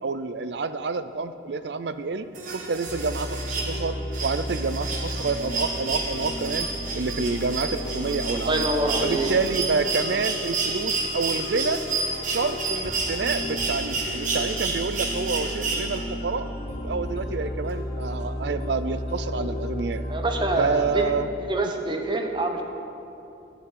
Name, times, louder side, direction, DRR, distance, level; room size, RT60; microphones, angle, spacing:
voice 1, 0.0-6.7 6.9-8.7 9.0-11.8 12.2-16.5 16.8-20.0 20.6-21.3, right 4 dB, 70° right, 12 dB, 0.5 m, -28 dB
sound 1, 2.3-16.3 17.7-17.8, right 4 dB, 45° right, 1.6 m, -30 dB
sound 2, 2.9-21.0, left 1 dB, 35° left, 1.6 m, -34 dB
voice 2, 8.3-9.3 20.1-21.1 21.4-22.6, right 2 dB, 25° right, 3 dB, 1.0 m, -26 dB
11.5 x 7.1 x 8.5 m, 2.8 s
head